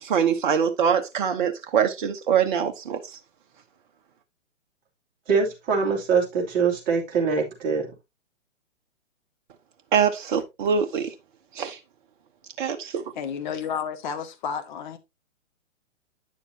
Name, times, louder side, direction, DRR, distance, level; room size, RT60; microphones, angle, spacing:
voice 1, 0.0-3.0 9.9-11.1 11.5-11.8 12.6-13.0, right 7 dB, 40° right, 1.0 m, -23 dB
voice 2, 5.3-7.9, right 5 dB, 25° right, 2.6 m, -23 dB
voice 3, 13.2-15.0, left 7 dB, 40° left, 1.1 m, -31 dB
9.4 x 7.0 x 2.8 m
figure-of-eight pair, 125°, 38 cm